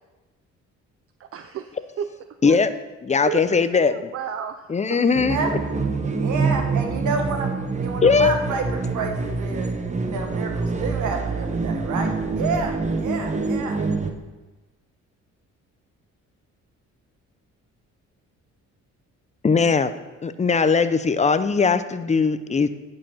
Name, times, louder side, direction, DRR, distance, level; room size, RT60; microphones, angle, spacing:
voice 1, 1.2-2.1 2.4-2.6 3.3-5.0 6.0-6.1, right 8 dB, 50° right, 9 dB, 0.5 m, -33 dB
voice 2, 3.0-4.1 4.7-5.4 8.0-8.3 19.4-19.9 20.2-22.7, left 5 dB, 25° left, 12 dB, 0.6 m, -19 dB
sound 1, 5.1-14.1, right 4 dB, 25° right, 0.9 m, -26 dB
voice 3, 6.1-7.5 7.8-9.7 10.0-13.8, right 4 dB, 75° right, 4 dB, 1.5 m, -29 dB
10.0 x 4.8 x 5.6 m, 1.2 s
cardioid pair, 90°, 30 cm